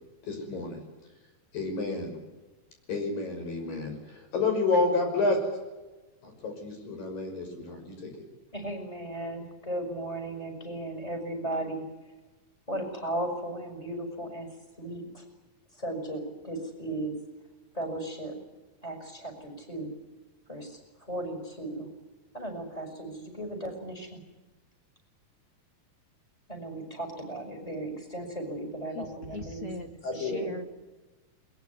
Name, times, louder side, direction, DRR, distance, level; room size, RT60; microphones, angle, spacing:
voice 1, 0.2-0.8 1.5-2.2 2.9-5.4 6.2-8.3 30.0-30.4, left 3 dB, 70° left, 4 dB, 7.6 m, -30 dB
voice 2, 8.5-11.8 12.7-14.5 14.8-15.2 15.7-17.1 17.7-18.3 18.8-19.9 20.5-21.9 22.3-24.2 26.5-29.7 30.2-30.5, right 1 dB, 10° left, 4 dB, 6.1 m, -36 dB
voice 3, 28.9-30.9, left 1 dB, 25° left, 6 dB, 2.2 m, -40 dB
22.0 x 21.5 x 9.7 m, 1.2 s
omnidirectional pair, 4.1 m